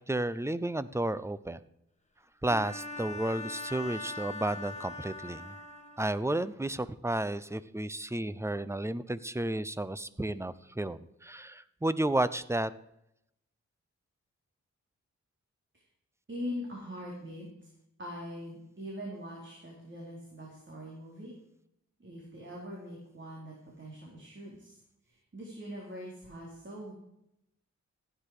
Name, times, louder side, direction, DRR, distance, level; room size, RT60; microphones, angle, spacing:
voice 1, 0.0-1.6 2.4-5.6 6.0-12.7, right 1 dB, 10° right, 16 dB, 0.6 m, -32 dB
Bowed string instrument, 2.5-6.2, left 2 dB, 25° left, 2.1 m, -41 dB
voice 2, 16.3-17.7 18.0-21.3 22.0-24.8 25.1-26.9, equal, 40° right, -3 dB, 4.0 m, -42 dB
15.0 x 9.8 x 4.9 m, 0.82 s
cardioid pair, 70°, 29 cm